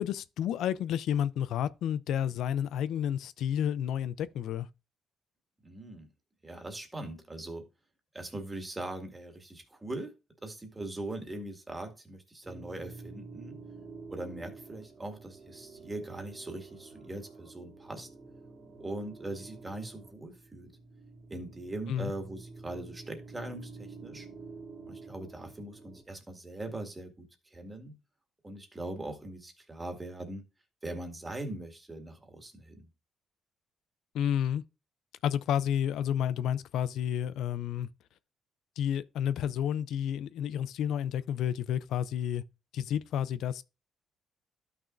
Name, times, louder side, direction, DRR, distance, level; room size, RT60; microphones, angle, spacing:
voice 1, 0.0-4.7 21.9-22.1 34.1-34.6 35.2-37.9 38.8-42.4 42.7-43.6, left 9 dB, 80° left, 0.4 m, -30 dB
voice 2, 5.6-6.1 6.4-7.6 8.1-10.1 10.4-13.6 14.1-18.1 18.8-20.7 21.3-24.3 24.9-27.9 28.4-30.4 30.8-32.9, right 2 dB, 20° right, 1.9 m, -41 dB
sound 1, 12.4-26.0, right 4 dB, 55° right, 2.3 m, -49 dB
12.5 x 6.0 x 2.5 m
cardioid pair, 90°, 0 cm